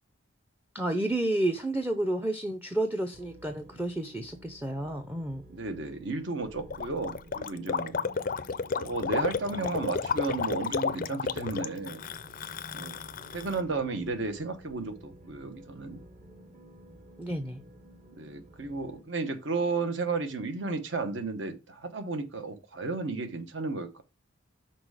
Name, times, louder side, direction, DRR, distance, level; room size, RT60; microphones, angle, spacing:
voice 1, 0.7-5.4 17.2-17.6, right 1 dB, 10° right, 7 dB, 0.5 m, -30 dB
sound 1, 3.1-19.0, equal, 35° right, 1.0 m, -51 dB
voice 2, 5.5-7.9 8.8-12.0 12.7-13.0 13.3-16.0 18.2-24.0, right 3 dB, 65° right, 8 dB, 1.1 m, -33 dB
Gurgling, 6.7-13.6, left 5 dB, 40° left, 0.4 m, -32 dB
6.1 x 4.4 x 4.8 m, 0.27 s
head